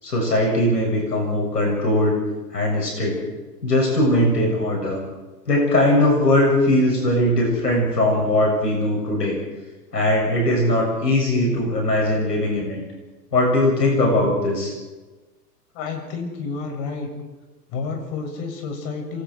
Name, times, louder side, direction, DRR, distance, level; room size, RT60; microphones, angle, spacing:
voice 1, 0.0-2.2 2.5-3.2 3.6-5.0 5.5-9.4 9.9-12.8 13.3-14.7, left 1 dB, 75° left, 0 dB, 7.6 m, -20 dB
voice 2, 15.7-17.1 17.7-19.2, left 4 dB, 40° left, 3 dB, 7.6 m, -30 dB
29.0 x 24.5 x 4.8 m, 1.2 s
figure-of-eight pair, 100°, 49 cm